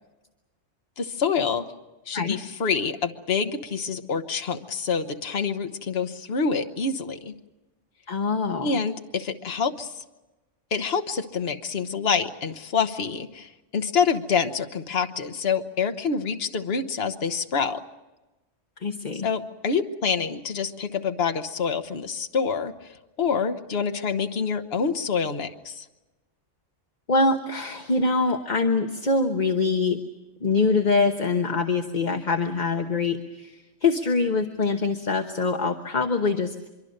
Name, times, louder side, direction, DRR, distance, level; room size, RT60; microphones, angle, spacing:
voice 1, 1.0-1.6 2.1-7.3 8.6-9.9 10.7-17.8 19.1-22.9 23.2-25.8, left 5 dB, 55° left, 7 dB, 1.4 m, -27 dB
voice 2, 8.1-8.8 18.8-19.3 27.1-30.0 30.4-36.7, left 3 dB, 40° left, 5 dB, 1.3 m, -24 dB
24.5 x 23.5 x 6.6 m, 1.1 s
omnidirectional pair, 1.2 m